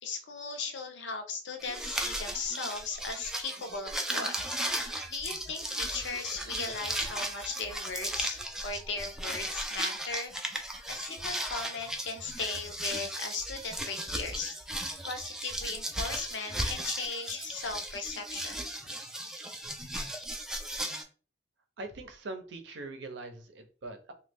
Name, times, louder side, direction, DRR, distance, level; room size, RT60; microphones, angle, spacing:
voice 1, 0.0-4.4 4.7-10.3 10.9-18.7, left 4 dB, 75° left, 6 dB, 0.6 m, -38 dB
sound 1, 1.6-21.0, right 1 dB, 5° right, 0.4 m, -36 dB
voice 2, 21.8-24.1, right 2 dB, 70° right, 7 dB, 0.6 m, -42 dB
3.0 x 2.2 x 3.4 m, 0.37 s
head